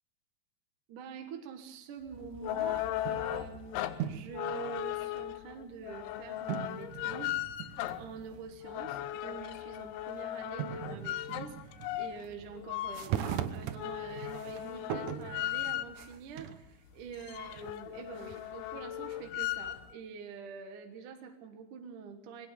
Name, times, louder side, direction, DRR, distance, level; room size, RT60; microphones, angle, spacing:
voice 1, 0.9-22.5, right 6 dB, 60° right, 5 dB, 2.4 m, -46 dB
sound 1, 2.1-16.2 16.7-16.8 17.0-19.9, left 14 dB, 90° left, 3.3 m, -37 dB
sound 2, 2.6-3.4 3.9-4.4 5.2-5.3 6.5-8.5 8.7-8.8 10.1-10.2 10.6-12.5 12.9-16.6 17.2-18.7, right 10 dB, 85° right, 1.7 m, -40 dB
21.5 x 18.5 x 6.9 m, 0.81 s
omnidirectional pair, 5.2 m